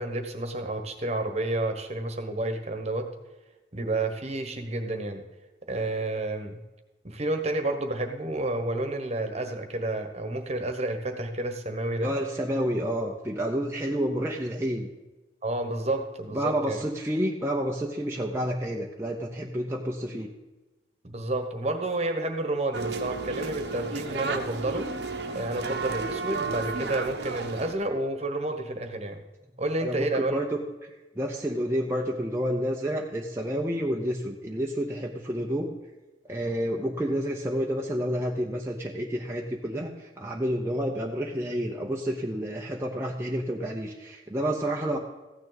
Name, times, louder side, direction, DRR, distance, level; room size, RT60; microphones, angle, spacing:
voice 1, 0.0-3.0 3.7-5.2 5.7-6.6 7.0-12.1 15.4-16.8 21.0-24.8 25.3-29.2 29.6-30.4, right 2 dB, 40° right, 6 dB, 1.3 m, -30 dB
voice 2, 12.0-14.9 16.3-20.3 29.8-30.6 31.2-35.8 36.3-45.0, equal, 15° right, -1 dB, 0.8 m, -29 dB
sound 1, 22.7-27.7, right 3 dB, 70° right, 1.0 m, -32 dB
15.0 x 9.6 x 4.1 m, 1.1 s
head